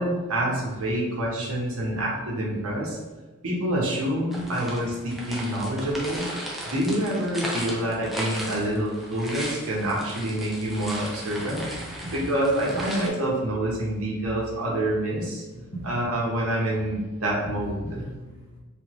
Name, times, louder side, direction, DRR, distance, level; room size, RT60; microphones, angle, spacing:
voice 1, 0.0-3.0 3.4-6.3 6.7-11.6 12.1-15.4 15.9-18.0, right 1 dB, 75° right, -4 dB, 1.1 m, -27 dB
sound 1, 4.3-13.1, equal, ahead, 0.6 m, -36 dB
voice 2, 11.2-12.3 12.7-13.1 15.5-16.0 17.4-18.6, right 1 dB, 30° left, -7 dB, 1.3 m, -39 dB
3.4 x 3.3 x 3.1 m, 1.2 s
head